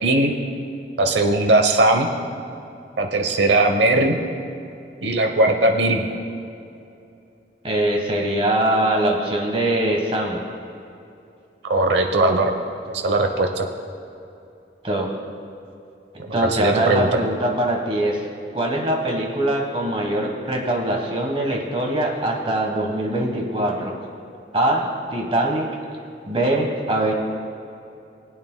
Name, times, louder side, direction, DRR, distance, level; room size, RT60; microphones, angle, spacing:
voice 1, 0.0-0.3 1.0-2.1 3.0-4.2 5.0-6.2 11.6-12.5 12.9-13.7 16.2-17.1, right 2 dB, 80° right, 4 dB, 0.9 m, -19 dB
voice 2, 7.6-10.4 14.8-15.1 16.1-18.2 18.5-23.9 24.5-24.8 25.1-25.7 26.3-27.1, right 1 dB, 30° right, 0 dB, 1.3 m, -22 dB
20.5 x 8.6 x 2.2 m, 2.7 s
head